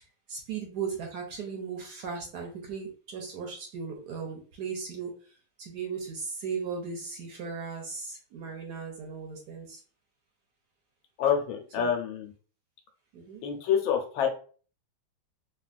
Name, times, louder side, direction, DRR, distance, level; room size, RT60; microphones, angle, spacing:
voice 1, 0.3-5.1 5.6-9.8 11.8-11.9 13.1-13.4, right 5 dB, 65° right, 0 dB, 1.1 m, -37 dB
voice 2, 11.2-12.3 13.4-14.3, left 8 dB, 90° left, 3 dB, 1.5 m, -27 dB
3.5 x 2.3 x 2.4 m, 0.40 s
omnidirectional pair, 2.1 m